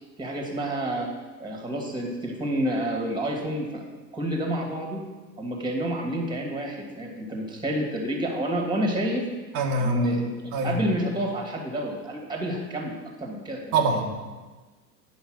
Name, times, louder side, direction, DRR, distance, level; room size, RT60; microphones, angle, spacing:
voice 1, 0.2-1.1 1.4-3.8 4.1-5.0 5.4-9.3 9.8-10.3 10.6-13.8, right 1 dB, 10° right, 0 dB, 2.2 m, -29 dB
voice 2, 9.5-10.1 10.5-10.8 13.7-14.1, right 2 dB, 50° right, -1 dB, 1.6 m, -24 dB
9.9 x 5.4 x 6.3 m, 1.3 s
hypercardioid pair, 90°, 48 cm